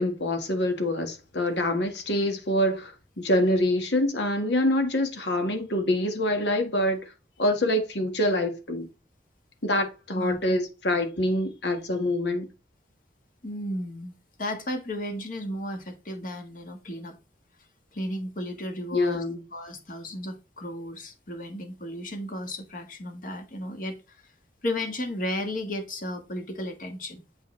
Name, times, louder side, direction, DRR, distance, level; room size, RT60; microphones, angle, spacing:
voice 1, 0.0-2.9 3.2-7.0 7.4-8.9 9.6-12.5 18.9-19.4, left 1 dB, 75° left, 1.5 m, -25 dB
voice 2, 13.4-17.2 17.9-19.2 19.5-24.3 24.6-27.2, left 1 dB, 50° left, 1.5 m, -34 dB
8.0 x 5.0 x 3.2 m
head